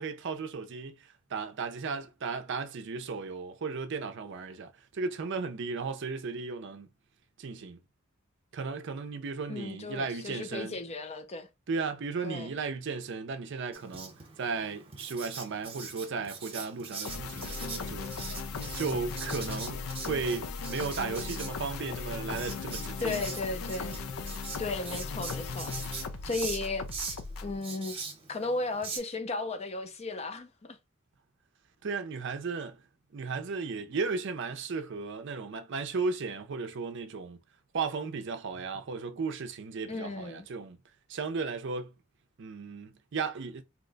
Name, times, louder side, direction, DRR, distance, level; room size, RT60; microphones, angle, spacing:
voice 1, 0.0-6.9 7.4-7.8 8.5-10.8 11.7-14.1 14.4-18.1 18.8-23.2 31.8-32.8 33.1-37.4 37.7-40.8 41.1-41.9 42.4-43.6, right 4 dB, 60° right, 0.5 m, -35 dB
voice 2, 9.5-11.5 12.2-12.5 23.0-24.0 24.6-25.8 26.2-26.9 27.4-28.0 28.3-30.8 39.9-40.5, left 3 dB, 30° left, 0.4 m, -35 dB
Writing, 13.7-29.0, right 5 dB, 25° right, 0.9 m, -43 dB
sound 1, 17.0-27.6, left 4 dB, 85° left, 0.4 m, -37 dB
2.8 x 2.1 x 3.9 m
head